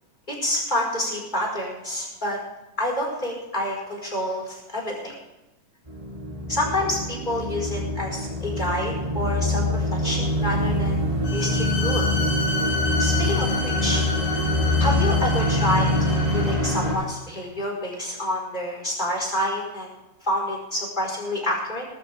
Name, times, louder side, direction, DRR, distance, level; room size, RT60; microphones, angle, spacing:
voice 1, 0.3-2.4 2.8-5.2 6.5-11.0 11.3-12.1 13.0-14.0 14.8-19.9 20.2-21.9, left 1 dB, 15° left, -2 dB, 5.2 m, -28 dB
sound 1, 5.9-17.0, left 1 dB, 10° right, 2.9 m, -24 dB
Bowed string instrument, 11.2-16.7, left 3 dB, 80° left, 3.5 m, -30 dB
20.5 x 13.5 x 3.6 m, 0.98 s
omnidirectional pair, 3.8 m